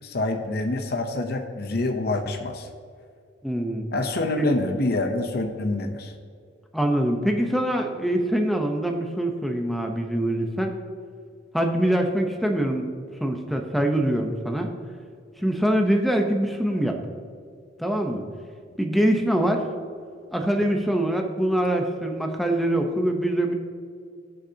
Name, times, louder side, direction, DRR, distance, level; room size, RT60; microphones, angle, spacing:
voice 1, 0.0-2.7 3.9-6.1, left 2 dB, 55° left, 5 dB, 0.8 m, -26 dB
voice 2, 3.4-3.9 4.4-4.5 6.7-10.7 11.5-12.9 13.2-14.7 15.4-16.9 17.8-18.2 18.8-19.6 20.3-23.5, right 1 dB, ahead, 3 dB, 0.8 m, -24 dB
18.5 x 6.5 x 2.9 m, 2.2 s
head